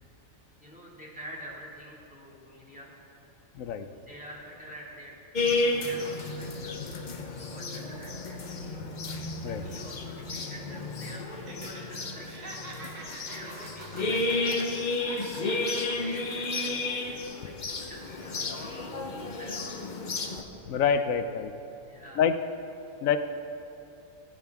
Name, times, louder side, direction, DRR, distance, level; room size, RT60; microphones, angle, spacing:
voice 1, 0.6-2.9 3.9-5.2 5.5-14.7 15.4-19.8 21.9-22.3, equal, 5° right, -5 dB, 2.2 m, -47 dB
voice 2, 3.5-3.9 9.4-9.6 20.7-21.5 22.2-22.4 23.0-23.2, left 7 dB, 85° left, 9 dB, 1.1 m, -26 dB
sound 1, 5.3-20.4, left 2 dB, 40° left, 0.8 m, -32 dB
Laughter, 11.3-11.8 12.1-14.8 15.1-16.7 17.1-17.2, right 3 dB, 75° right, 1.6 m, -45 dB
19.5 x 8.8 x 3.5 m, 2.8 s
omnidirectional pair, 1.3 m